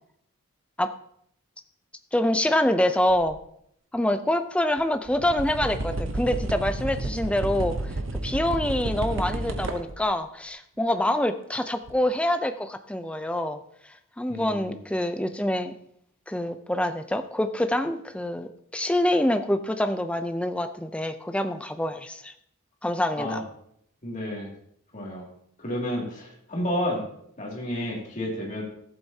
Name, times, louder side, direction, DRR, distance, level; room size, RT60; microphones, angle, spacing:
voice 1, 2.1-3.4 3.9-7.7 8.2-13.6 14.2-15.7 16.3-22.3 22.8-23.4, left 1 dB, 5° left, 8 dB, 0.4 m, -26 dB
sound 1, 3.1-3.4 4.8-4.9 5.1-10.1 11.9-12.0, right 2 dB, 65° right, 0.8 m, -31 dB
voice 2, 14.3-14.8 23.1-23.4 24.0-24.5 24.9-25.3 25.6-27.1 27.4-28.6, left 1 dB, 35° left, -2 dB, 2.4 m, -31 dB
14.0 x 8.0 x 2.8 m, 0.70 s
head